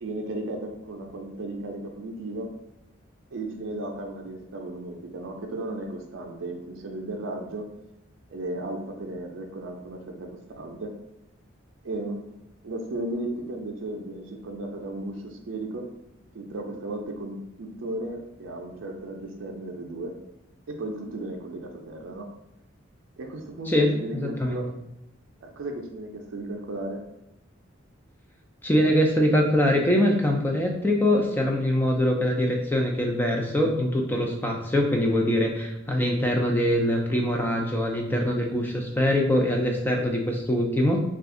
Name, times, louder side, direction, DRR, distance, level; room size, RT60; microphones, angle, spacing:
voice 1, 0.0-2.5 3.3-7.7 8.3-10.3 10.6-10.9 11.8-12.2 12.6-15.9 16.3-20.1 20.7-22.3 23.2-24.8 25.4-27.0, right 2 dB, 75° right, 2 dB, 0.4 m, -35 dB
voice 2, 23.7-24.6 28.6-41.0, left 1 dB, 10° left, 0 dB, 0.3 m, -23 dB
2.4 x 2.4 x 3.7 m, 0.87 s
head